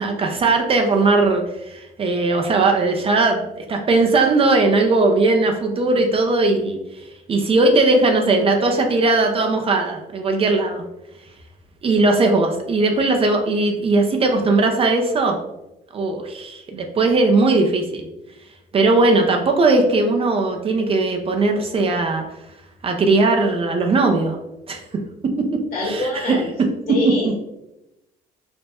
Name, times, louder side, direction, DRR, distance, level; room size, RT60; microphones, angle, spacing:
voice 1, 0.0-6.8 7.3-10.8 11.8-15.4 15.9-18.0 18.7-22.2 22.8-24.4 24.7-24.8 25.5-26.4 27.2-27.3, right 3 dB, 35° right, 3 dB, 0.5 m, -18 dB
voice 2, 25.7-26.5 26.9-27.4, left 2 dB, 60° left, -2 dB, 1.5 m, -24 dB
3.3 x 2.1 x 4.1 m, 0.91 s
cardioid pair, 110°, 17 cm